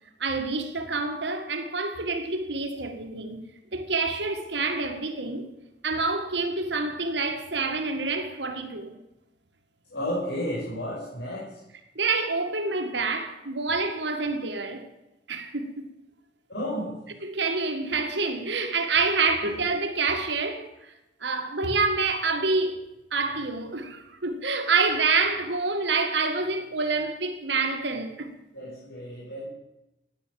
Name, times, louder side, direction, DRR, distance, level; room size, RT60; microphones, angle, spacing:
voice 1, 0.2-3.4 3.7-5.5 5.8-9.0 12.0-14.9 15.3-15.9 17.2-20.7 21.2-28.3, right 4 dB, 75° right, 1.9 m, -27 dB
voice 2, 9.9-11.6 16.5-17.0 19.4-19.5 28.5-29.5, equal, 70° left, 5.6 m, -32 dB
15.0 x 10.0 x 7.7 m
head